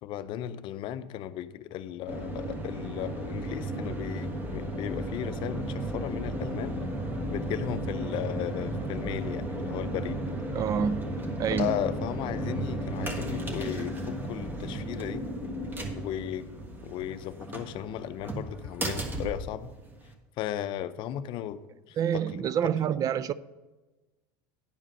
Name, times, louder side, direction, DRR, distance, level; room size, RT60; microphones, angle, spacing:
voice 1, 0.0-6.8 7.3-10.2 11.5-15.2 16.0-16.5 16.8-19.7 20.4-21.6 21.9-22.4, left 11 dB, 50° left, 0.5 m, -35 dB
sound 1, 2.1-20.1, right 1 dB, 20° right, 1.4 m, -34 dB
voice 2, 10.5-11.1 11.4-11.7 22.0-23.3, right 8 dB, 35° right, 0.4 m, -27 dB
10.5 x 5.0 x 5.4 m
supercardioid pair, 115°, 11 cm